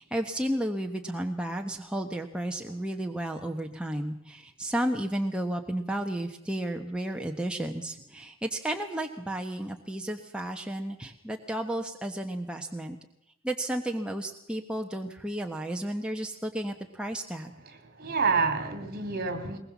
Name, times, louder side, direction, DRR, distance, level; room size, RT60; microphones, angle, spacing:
voice 1, 0.0-13.0 13.4-17.5, right 1 dB, 5° right, 3 dB, 1.1 m, -32 dB
voice 2, 17.6-19.6, right 4 dB, 45° right, 9 dB, 2.9 m, -28 dB
22.0 x 20.5 x 7.2 m, 0.77 s
head